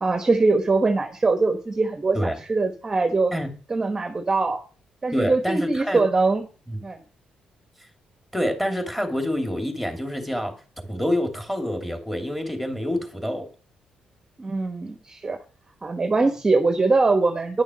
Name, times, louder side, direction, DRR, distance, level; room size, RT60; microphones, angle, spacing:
voice 1, 0.0-3.3 3.7-4.6 5.0-6.5 6.8-7.0 14.4-15.4 15.8-17.6, right 3 dB, 25° right, 7 dB, 1.2 m, -22 dB
voice 2, 5.1-6.0 6.7-6.8 8.3-10.6 10.9-13.5, equal, 5° left, 5 dB, 2.6 m, -27 dB
10.5 x 6.4 x 6.3 m, 0.36 s
cardioid pair, 105°, 3 cm